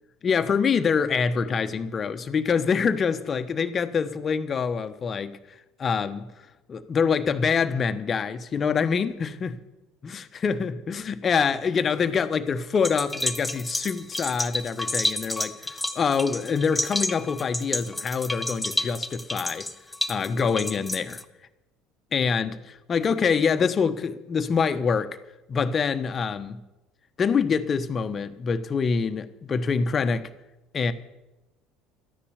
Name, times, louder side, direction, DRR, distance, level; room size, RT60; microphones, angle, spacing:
voice 1, 0.2-5.4 5.8-6.3 6.7-9.6 10.0-19.7 20.1-21.2 22.1-25.2 25.5-26.6 27.2-30.3 30.7-30.9, left 6 dB, 35° left, 1.1 m, -25 dB
sound 1, 12.8-21.2, left 1 dB, 10° left, 1.0 m, -30 dB
13.0 x 10.0 x 8.2 m
hypercardioid pair, 65°, 0 cm